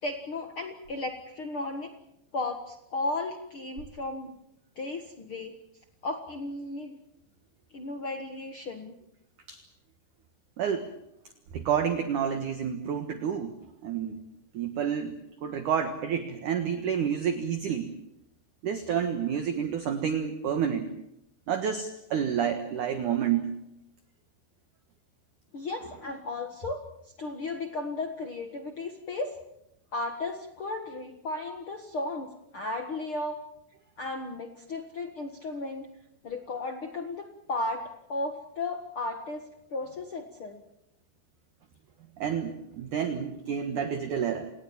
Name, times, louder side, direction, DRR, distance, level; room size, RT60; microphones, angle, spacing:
voice 1, 0.0-1.9 2.3-4.3 4.7-5.5 6.0-7.0 7.7-8.9 25.5-26.8 27.2-29.4 29.9-33.3 34.0-35.9 36.2-40.6, left 2 dB, 85° left, 5 dB, 1.1 m, -35 dB
voice 2, 10.6-10.9 11.5-13.6 13.8-14.2 14.5-17.9 18.6-20.9 21.5-23.5 42.2-44.5, right 8 dB, 60° right, 8 dB, 2.2 m, -29 dB
29.5 x 19.0 x 7.2 m, 0.81 s
omnidirectional pair, 5.3 m